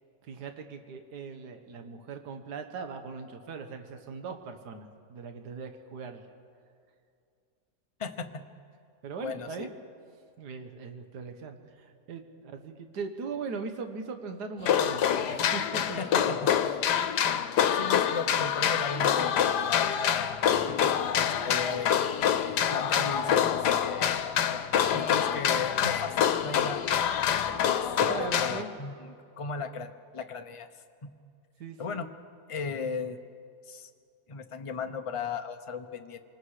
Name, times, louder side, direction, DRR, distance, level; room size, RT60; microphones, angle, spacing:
voice 1, 0.2-6.3 9.0-9.7 10.4-16.7 28.0-28.7 31.6-32.1, right 5 dB, 75° right, 6 dB, 1.8 m, -40 dB
voice 2, 8.0-8.5 9.2-9.7 16.0-16.5 17.7-20.9 21.4-22.0 22.5-24.2 24.5-24.6 24.9-27.9 28.2-30.7 31.0-31.1 31.8-32.1 32.5-33.2 33.7-33.9 34.3-36.2, left 5 dB, 30° left, 6 dB, 0.6 m, -36 dB
sound 1, 14.6-28.6, left 9 dB, 85° left, 1.4 m, -26 dB
26.5 x 20.0 x 4.9 m, 2.4 s
omnidirectional pair, 1.8 m